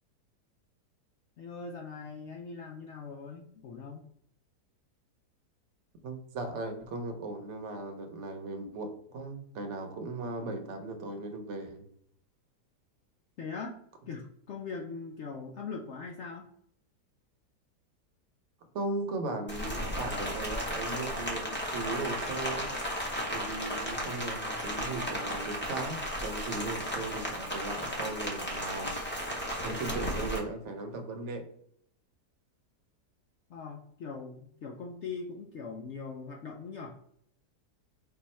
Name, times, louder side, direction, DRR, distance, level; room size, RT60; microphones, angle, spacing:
voice 1, 1.4-4.0 13.4-13.8 14.1-16.5 33.5-36.9, left 4 dB, 75° left, 1 dB, 0.6 m, -41 dB
voice 2, 6.0-11.8 18.7-22.7 23.3-29.0 29.6-31.5, right 2 dB, 55° right, 5 dB, 0.9 m, -37 dB
Rain, 19.5-30.4, equal, 10° left, 0.5 m, -34 dB
4.6 x 2.4 x 4.2 m, 0.66 s
omnidirectional pair, 1.7 m